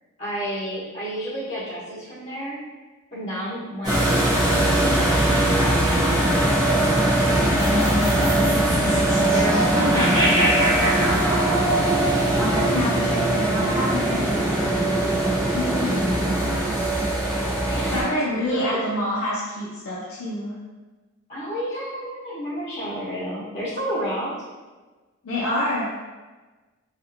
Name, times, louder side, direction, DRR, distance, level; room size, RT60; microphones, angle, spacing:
voice 1, 0.2-2.6 3.1-8.5 9.3-9.6 9.9-11.1 15.6-16.1 17.7-18.8 21.3-24.4, equal, 35° left, -14 dB, 1.0 m, -31 dB
sound 1, 3.8-18.0, right 1 dB, 20° right, 0.5 m, -21 dB
sound 2, 7.6-13.9, right 1 dB, 65° right, 1.0 m, -26 dB
voice 2, 9.7-10.3 12.4-16.7 17.9-20.6 25.2-25.8, left 1 dB, 65° left, -6 dB, 0.5 m, -28 dB
2.8 x 2.4 x 2.5 m, 1.3 s
head